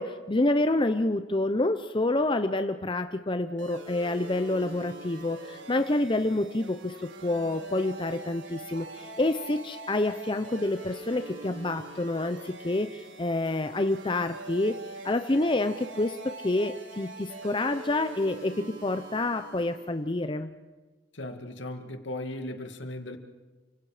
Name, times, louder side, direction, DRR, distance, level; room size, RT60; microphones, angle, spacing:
voice 1, 0.0-14.7 15.0-18.5 18.8-20.5, left 2 dB, 25° left, 8 dB, 0.8 m, -28 dB
sound 1, 3.6-20.0, right 2 dB, 75° right, 3.8 m, -44 dB
voice 2, 21.1-23.2, left 1 dB, 70° left, 6 dB, 2.3 m, -37 dB
29.5 x 25.5 x 5.0 m, 1.3 s
head